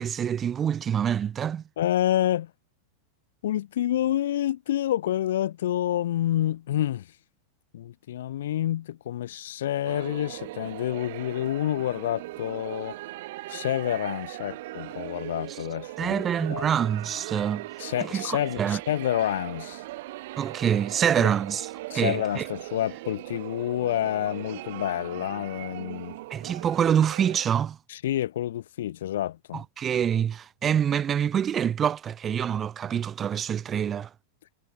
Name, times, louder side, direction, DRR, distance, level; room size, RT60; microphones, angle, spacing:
voice 1, 0.0-1.6 16.0-17.7 18.0-18.8 20.4-21.7 21.9-22.4 26.3-27.8 29.5-34.1, right 8 dB, 20° right, 1.1 m, -26 dB
voice 2, 1.8-2.5 3.4-7.1 7.7-13.0 13.5-16.7 17.8-19.8 21.2-21.3 21.9-26.2 27.9-29.6, left 12 dB, 80° left, 0.8 m, -28 dB
sound 1, 9.8-27.5, right 18 dB, 55° right, 1.4 m, -39 dB
supercardioid pair, 165°, 0 cm